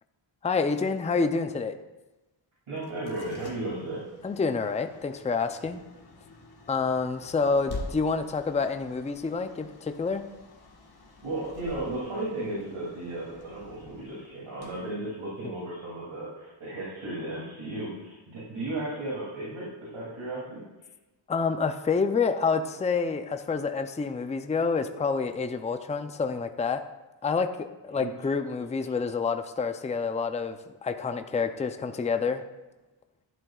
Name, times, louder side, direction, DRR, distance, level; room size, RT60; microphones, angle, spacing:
voice 1, 0.4-1.8 4.2-5.8 6.7-10.2 21.3-26.8 27.2-32.4, left 4 dB, 15° left, 8 dB, 0.5 m, -28 dB
voice 2, 2.7-4.0 11.2-20.6 27.9-28.1, right 2 dB, 80° right, -7 dB, 2.8 m, -35 dB
sound 1, 2.8-15.7, left 2 dB, 50° left, 1.5 m, -47 dB
12.0 x 11.0 x 2.4 m, 1.1 s
wide cardioid pair, 115°, 48 cm